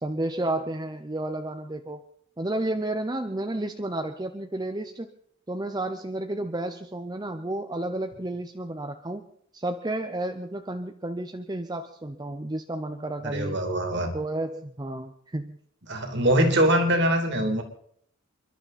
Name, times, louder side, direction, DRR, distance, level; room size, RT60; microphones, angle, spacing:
voice 1, 0.0-2.0 2.4-5.1 5.5-9.2 9.5-13.6 14.1-15.6, right 1 dB, 20° right, 7 dB, 0.7 m, -31 dB
voice 2, 13.2-14.1 15.9-17.6, right 1 dB, 55° right, 5 dB, 2.8 m, -23 dB
29.0 x 11.5 x 4.2 m, 0.65 s
head